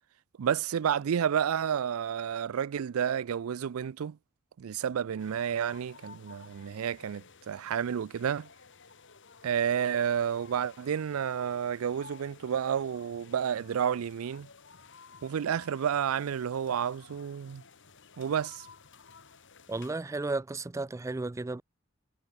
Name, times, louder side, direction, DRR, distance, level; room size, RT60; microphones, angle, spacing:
voice 1, 0.4-4.2 4.6-8.5 9.4-14.5 15.2-17.6 18.2-18.7, right 8 dB, 85° right, 0.4 m, -30 dB
sound 1, 5.2-19.9, left 5 dB, 60° left, 2.5 m, -54 dB
voice 2, 19.7-21.6, right 3 dB, 15° right, 0.3 m, -33 dB
head